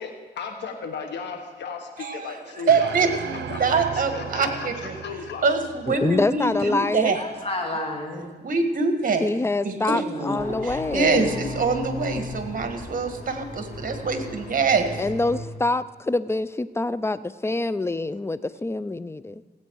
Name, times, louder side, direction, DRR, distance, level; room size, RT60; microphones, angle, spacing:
voice 1, 0.0-3.0 3.5-5.5 6.6-6.7, left 5 dB, 85° left, 4 dB, 1.4 m, -35 dB
voice 2, 2.0-2.3 2.7-4.9 5.4-7.2 8.4-9.3 9.6-10.4 10.6-15.0, right 4 dB, 50° right, 6 dB, 1.6 m, -24 dB
sound 1, 2.7-7.1, right 8 dB, 80° right, 0.6 m, -37 dB
voice 3, 5.9-7.2 9.2-11.3 15.0-17.2 17.4-19.4, left 2 dB, 15° left, 15 dB, 0.5 m, -25 dB
voice 4, 7.1-8.3 9.8-10.9, left 1 dB, 35° left, 0 dB, 2.2 m, -32 dB
sound 2, 10.4-15.4, left 1 dB, 65° left, 4.0 m, -36 dB
16.5 x 8.3 x 4.7 m, 1.4 s
cardioid pair, 70°, 18 cm